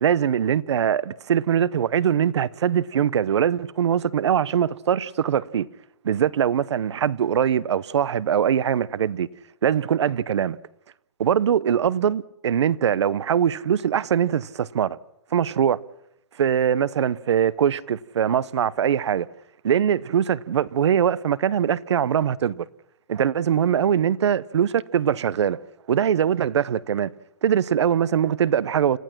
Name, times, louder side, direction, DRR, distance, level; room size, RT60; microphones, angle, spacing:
voice 1, 0.0-5.7 6.0-9.3 9.6-10.6 11.2-15.0 15.3-15.8 16.4-19.3 19.6-22.7 23.1-25.6 25.9-27.1 27.4-29.0, right 9 dB, 85° right, 0.8 m, -22 dB
28.5 x 15.0 x 6.1 m
hypercardioid pair, 170°, 14 cm